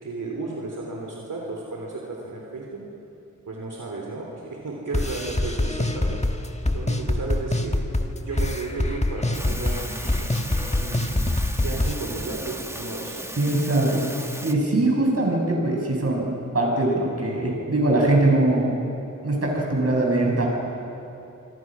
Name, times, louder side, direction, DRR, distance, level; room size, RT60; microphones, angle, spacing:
voice 1, 0.0-2.8 3.5-6.2 6.7-7.8 8.2-10.3 10.8-11.1 11.6-13.3, right 3 dB, 80° right, -2 dB, 3.5 m, -33 dB
sound 1, 4.9-11.9, left 1 dB, 20° left, 1.6 m, -25 dB
sound 2, 9.3-14.5, right 1 dB, 10° right, 1.7 m, -36 dB
voice 2, 13.4-14.0 14.4-18.7 19.2-20.5, right 2 dB, 50° right, -1 dB, 6.5 m, -22 dB
26.0 x 25.5 x 6.2 m, 2.9 s
wide cardioid pair, 95°, 31 cm